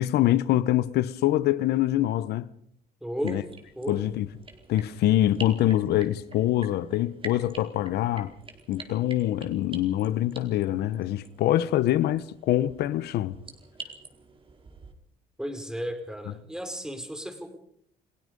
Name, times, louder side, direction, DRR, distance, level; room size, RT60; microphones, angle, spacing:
voice 1, 0.0-2.5 3.2-3.4 3.9-4.2 4.7-8.3 8.7-13.4, left 13 dB, 75° left, 1.1 m, -24 dB
voice 2, 3.0-3.4 3.7-4.0 15.4-17.6, equal, 5° right, 5.1 m, -34 dB
sound 1, 3.1-14.9, right 4 dB, 30° right, 4.5 m, -47 dB
29.5 x 19.0 x 5.4 m
cardioid pair, 110°, 17 cm